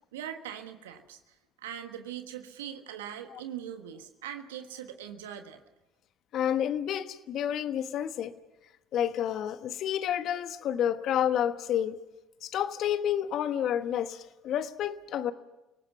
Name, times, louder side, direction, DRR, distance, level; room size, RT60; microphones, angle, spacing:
voice 1, 0.1-1.2 1.6-5.6, right 9 dB, 80° right, 7 dB, 1.3 m, -41 dB
voice 2, 6.3-8.3 8.9-12.0 12.4-15.3, left 10 dB, 55° left, 11 dB, 1.2 m, -29 dB
29.0 x 18.0 x 5.9 m, 1.0 s
hypercardioid pair, 65°, 0 cm